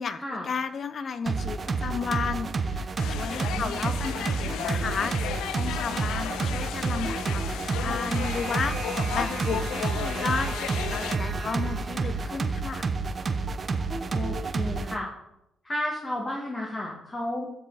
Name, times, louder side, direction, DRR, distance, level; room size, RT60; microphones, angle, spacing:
voice 1, 0.0-12.9, left 5 dB, 50° left, 12 dB, 0.8 m, -33 dB
sound 1, 1.3-15.0, right 4 dB, 40° right, 0.8 m, -29 dB
sound 2, 3.0-11.2, left 10 dB, 85° left, 0.4 m, -34 dB
voice 2, 3.4-3.8 14.1-15.1 15.6-17.4, left 1 dB, 25° left, -2 dB, 2.1 m, -32 dB
14.5 x 5.0 x 4.1 m, 0.83 s
cardioid pair, 90°, 0 cm